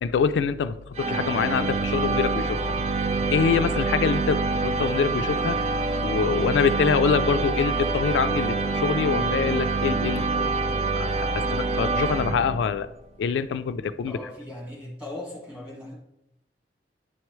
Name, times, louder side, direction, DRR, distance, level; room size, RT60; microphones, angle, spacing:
voice 1, 0.0-2.6 3.3-5.6 6.0-10.5 11.0-12.9 13.2-14.2, left 6 dB, 85° left, 0.3 m, -25 dB
sound 1, 1.0-12.9, right 3 dB, 35° right, 0.4 m, -26 dB
voice 2, 14.1-16.0, left 1 dB, 5° right, 1.8 m, -38 dB
9.4 x 4.6 x 3.1 m
head